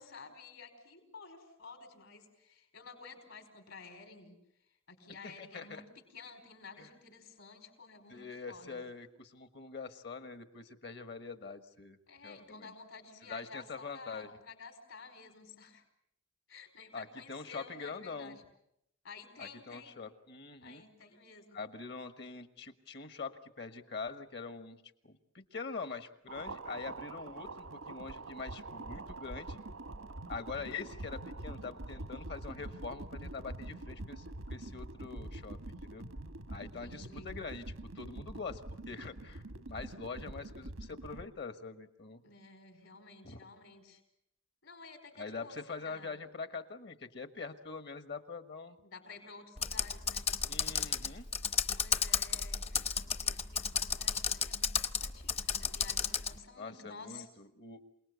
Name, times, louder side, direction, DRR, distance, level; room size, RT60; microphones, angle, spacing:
voice 1, 0.0-4.4 4.9-8.8 12.1-15.8 16.5-18.4 19.0-20.0 20.6-21.6 36.6-37.3 42.2-44.0 44.6-46.2 48.8-50.3 51.8-57.3, left 4 dB, 70° left, 5 dB, 4.9 m, -52 dB
voice 2, 5.2-5.8 6.8-6.9 8.1-12.0 12.2-12.7 13.3-14.3 16.9-18.4 19.4-20.8 21.5-29.6 30.3-36.0 36.5-39.4 39.7-42.2 43.2-43.4 45.2-48.8 50.5-51.2 56.6-57.8, left 4 dB, 55° left, 10 dB, 1.4 m, -44 dB
sound 1, 26.3-41.3, right 2 dB, 85° right, 1.2 m, -45 dB
Computer keyboard, 49.6-56.3, left 7 dB, 30° left, 0.9 m, -33 dB
27.5 x 19.0 x 8.2 m, 0.78 s
head